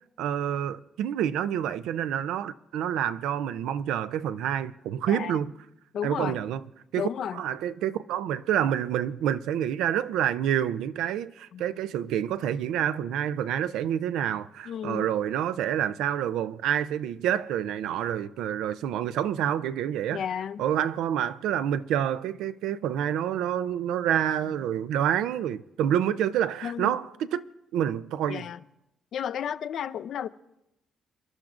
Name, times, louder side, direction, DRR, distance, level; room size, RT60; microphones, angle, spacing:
voice 1, 0.2-5.5 6.0-6.6 6.9-20.2 20.6-27.5 27.7-28.5, right 10 dB, 90° right, 0.4 m, -28 dB
voice 2, 5.1-5.4 5.9-6.4 7.0-7.4 11.5-11.6 14.7-15.1 20.1-20.6 24.4-24.6 26.6-27.0 28.3-28.6 29.1-30.3, left 9 dB, 70° left, 0.5 m, -33 dB
27.5 x 11.5 x 2.5 m
cardioid pair, 90°, 0 cm